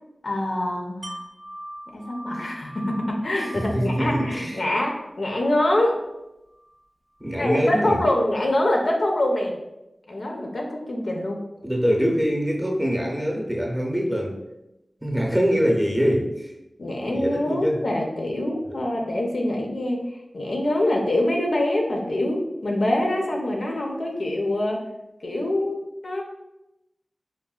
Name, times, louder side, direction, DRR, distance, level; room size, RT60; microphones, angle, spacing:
voice 1, 0.2-1.2 1.9-6.0 7.4-9.5 10.1-11.4 16.8-20.0 20.3-24.8 25.2-26.2, left 1 dB, 80° left, 0 dB, 0.5 m, -25 dB
Wind chime, 1.0-6.8 7.2-7.3, equal, 85° right, 0.5 m, -42 dB
voice 2, 3.4-4.6 7.2-8.0 11.6-14.4 15.0-16.5 16.8-17.8 18.7-18.8, equal, 10° right, 0 dB, 0.6 m, -24 dB
3.8 x 2.1 x 2.3 m, 0.93 s
wide cardioid pair, 55°, 0 cm